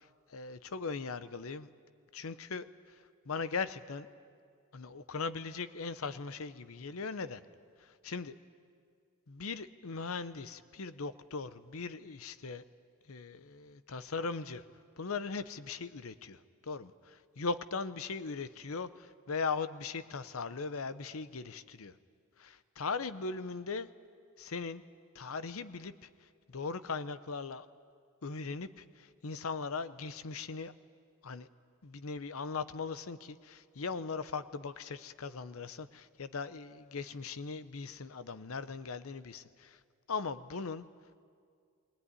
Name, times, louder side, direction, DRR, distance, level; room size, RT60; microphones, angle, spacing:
voice 1, 0.0-1.7 2.1-4.1 4.7-7.4 7.8-8.3 9.3-12.6 13.1-14.6 15.0-21.9 22.4-23.9 24.4-24.8 25.1-27.7 28.2-30.7 31.2-31.5 31.8-39.8 40.1-40.8, left 4 dB, 70° left, 14 dB, 0.8 m, -39 dB
20.0 x 19.0 x 9.7 m, 2.1 s
head